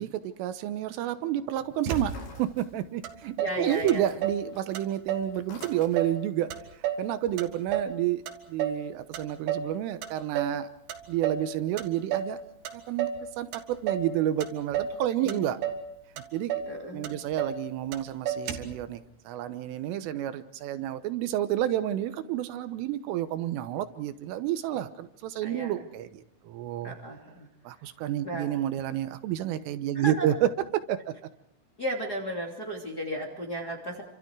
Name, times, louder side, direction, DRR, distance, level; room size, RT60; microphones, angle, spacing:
voice 1, 0.0-2.1 2.4-8.2 8.5-10.7 11.1-12.4 12.7-13.1 13.4-15.6 16.3-16.6 16.9-27.0 27.7-31.1, right 12 dB, 80° right, 11 dB, 3.5 m, -30 dB
sound 1, 1.8-3.1 3.4-6.3, left 3 dB, 70° left, 8.2 m, -49 dB
Motor vehicle (road), 1.9-2.5 3.0-3.1 3.4-4.5 4.7-5.3 5.6-6.2 6.5-8.0 8.3-8.9 9.1-9.7 10.0-10.6 10.9-11.5 11.8-12.4 12.7-13.2 13.5-14.1 14.4-15.0 15.3-15.9 16.2-16.3 16.5-16.7 17.0-17.6 17.9-18.0 18.3-18.8, right 9 dB, 60° right, 3.5 m, -31 dB
voice 2, 3.4-4.0 15.2-15.5 16.7-17.2 25.4-25.7 26.8-27.5 28.2-28.5 29.9-30.3 31.8-34.0, right 1 dB, 25° left, -1 dB, 2.3 m, -34 dB
29.5 x 26.0 x 4.7 m, 0.71 s
omnidirectional pair, 5.9 m